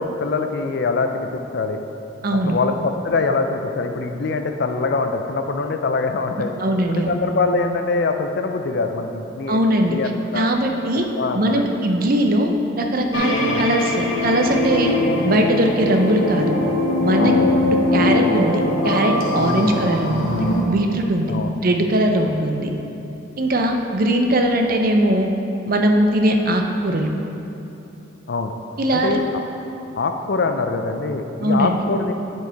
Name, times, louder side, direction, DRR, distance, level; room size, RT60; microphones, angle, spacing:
voice 1, 0.0-1.8 2.3-6.5 6.9-9.6 9.9-10.5 11.2-11.6 13.5-13.6 17.2-17.4 19.4-19.9 21.3-21.5 28.3-28.5 28.9-29.2 30.0-32.1, left 3 dB, 55° left, 6 dB, 0.4 m, -23 dB
voice 2, 2.2-2.6 6.6-7.1 9.5-10.0 10.3-11.1 11.3-14.9 15.2-16.5 17.0-17.3 17.9-21.3 21.6-22.7 23.4-25.3 25.7-27.1 28.8-29.2 31.4-31.9, right 1 dB, 45° right, 3 dB, 0.6 m, -20 dB
sound 1, 13.1-20.6, left 2 dB, 80° left, 1.1 m, -21 dB
9.8 x 4.6 x 4.5 m, 2.9 s
head